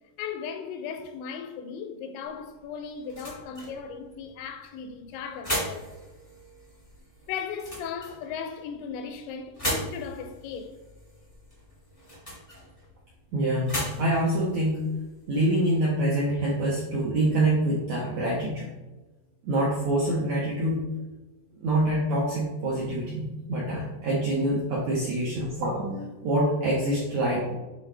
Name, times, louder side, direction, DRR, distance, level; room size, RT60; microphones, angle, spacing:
voice 1, 0.2-5.9 7.3-10.8, left 6 dB, 85° left, 3.0 m, -37 dB
sound 1, 2.2-15.7, equal, 35° left, 0.5 m, -38 dB
voice 2, 13.3-14.8 15.3-18.7 19.4-20.8 21.6-27.5, right 1 dB, 85° right, 1.5 m, -26 dB
8.9 x 3.8 x 3.4 m
omnidirectional pair, 5.1 m